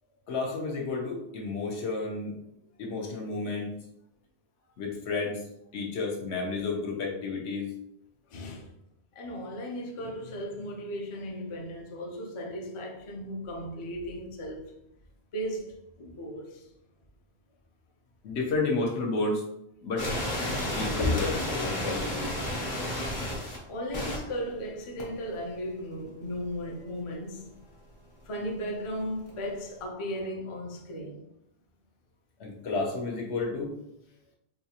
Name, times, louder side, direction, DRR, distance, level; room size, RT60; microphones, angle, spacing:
voice 1, 0.3-2.4 2.8-3.8 4.8-5.4 5.7-7.7 18.2-19.4 19.8-20.1 20.7-22.3 32.4-33.7, left 3 dB, 80° left, 1.1 m, -31 dB
voice 2, 8.3-8.7 9.1-14.7 15.3-16.7 21.0-21.3 23.7-27.5 28.2-31.2, equal, 40° left, 0.4 m, -35 dB
sound 1, 20.0-23.6 23.9-24.2 25.0-25.1 29.3-29.4, left 1 dB, 60° left, 1.2 m, -31 dB
4.0 x 2.4 x 2.8 m
omnidirectional pair, 1.1 m